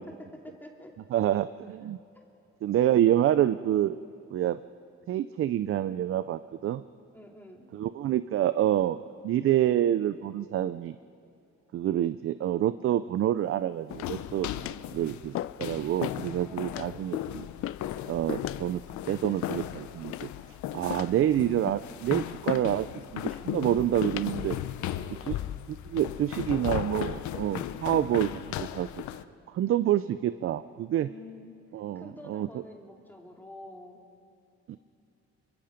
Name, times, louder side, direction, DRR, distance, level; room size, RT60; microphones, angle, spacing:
voice 1, 0.1-0.9 7.1-7.7 14.6-14.9 16.4-16.8 22.6-22.8 24.7-25.3 30.9-31.6 31.9-34.0, left 1 dB, 5° left, 0 dB, 2.5 m, -48 dB
voice 2, 1.1-2.0 2.6-4.0 4.3-4.6 5.1-6.8 7.7-9.0 9.2-11.0 11.7-14.5 14.9-15.3 15.6-17.5 18.1-18.8 19.1-20.3 20.7-22.9 23.1-24.6 25.3-25.4 25.7-28.3 28.6-29.0 29.5-31.1 31.7-32.5 34.7-34.8, right 12 dB, 50° right, 13 dB, 0.5 m, -27 dB
sound 1, 13.9-29.2, left 12 dB, 75° left, 0.8 m, -36 dB
sound 2, 13.9-14.3 14.7-14.9 15.3-15.7 16.0-16.3 16.7-16.9 17.6-17.9 18.4-18.7 19.2-19.7 20.1-20.5 20.9-21.2 21.7-22.0 22.5-22.7 23.3-23.5 24.0-24.3 25.0-25.3, left 13 dB, 50° left, 0.5 m, -36 dB
27.5 x 24.0 x 5.1 m, 2.7 s
cardioid pair, 135°, 29 cm